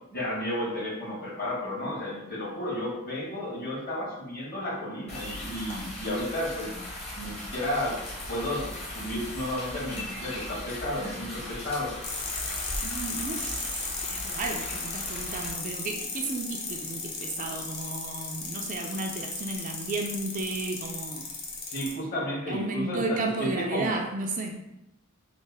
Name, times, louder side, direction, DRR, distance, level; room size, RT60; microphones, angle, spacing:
voice 1, 0.1-6.8 7.1-8.0 8.3-11.9 21.7-24.0, left 1 dB, 45° left, -6 dB, 1.5 m, -32 dB
sound 1, 5.1-15.5, left 1 dB, 30° left, 0.9 m, -38 dB
sound 2, 12.0-21.9, left 4 dB, 85° left, 0.7 m, -35 dB
voice 2, 12.8-21.3 22.5-24.5, right 3 dB, 35° right, 2 dB, 0.3 m, -33 dB
3.3 x 2.4 x 3.4 m, 0.89 s
head